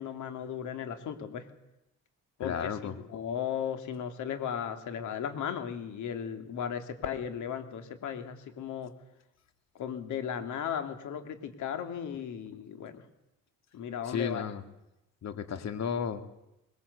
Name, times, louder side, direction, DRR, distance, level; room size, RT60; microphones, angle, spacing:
voice 1, 0.0-1.5 2.4-8.9 9.7-13.0 13.7-14.4, left 8 dB, 80° left, 8 dB, 2.7 m, -36 dB
voice 2, 2.4-3.0 12.5-12.6 14.0-14.6 15.2-16.2, left 7 dB, 60° left, 9 dB, 2.2 m, -33 dB
21.0 x 20.0 x 8.2 m, 0.90 s
cardioid pair, 90°, 30 cm